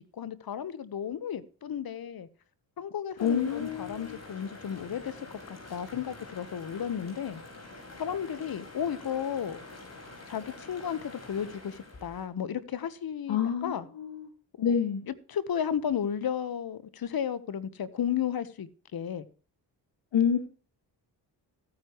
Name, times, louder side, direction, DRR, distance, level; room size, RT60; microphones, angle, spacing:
voice 1, 0.1-2.3 2.8-5.3 5.7-7.4 8.0-9.6 10.3-13.9 14.6-14.7 15.1-19.3, left 8 dB, 55° left, 17 dB, 1.1 m, -33 dB
voice 2, 3.2-4.2 13.3-14.3 14.6-15.0 20.1-20.4, left 7 dB, 75° left, 5 dB, 2.0 m, -27 dB
sound 1, 3.2-12.3, left 2 dB, 35° left, 5.1 m, -47 dB
15.0 x 9.7 x 3.1 m, 0.37 s
cardioid pair, 65°, 44 cm